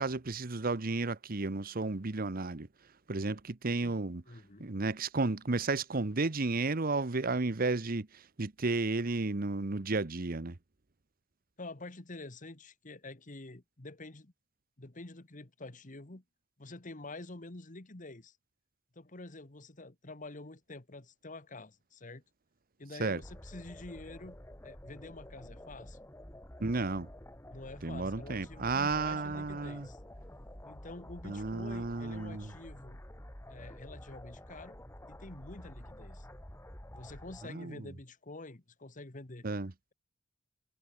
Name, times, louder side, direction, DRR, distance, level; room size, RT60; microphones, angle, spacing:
voice 1, 0.0-2.7 3.1-4.2 4.6-10.5 23.0-23.2 26.6-27.1 27.8-29.9 31.2-32.5 37.5-37.9 39.4-39.7, right 3 dB, 50° right, 1.0 m, -33 dB
voice 2, 4.3-4.7 11.6-14.3 14.8-16.2 16.6-18.4 18.9-22.2 22.8-26.0 27.5-30.0 30.6-33.0 33.5-34.8 35.1-36.3 36.9-39.5, left 2 dB, 40° left, 1.6 m, -48 dB
sound 1, 23.2-37.5, left 1 dB, 15° left, 2.9 m, -50 dB
head